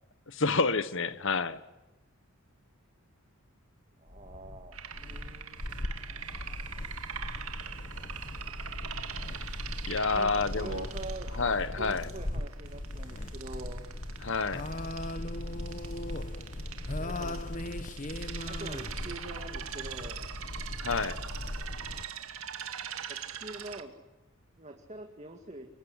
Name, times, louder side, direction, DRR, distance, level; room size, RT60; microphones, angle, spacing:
voice 1, 0.3-1.6 9.9-10.9 11.4-12.1 14.2-14.6 20.8-21.2, left 4 dB, 60° left, 14 dB, 1.2 m, -29 dB
voice 2, 4.0-5.7 10.1-11.3 11.6-13.8 17.0-17.4 18.5-20.2 23.1-23.9 24.6-25.7, right 2 dB, 30° right, 3 dB, 2.1 m, -44 dB
sound 1, 4.1-22.0, left 1 dB, 35° left, 1.1 m, -38 dB
sound 2, 4.7-23.8, right 8 dB, 75° right, 2.1 m, -43 dB
26.0 x 23.5 x 9.8 m, 1.0 s
head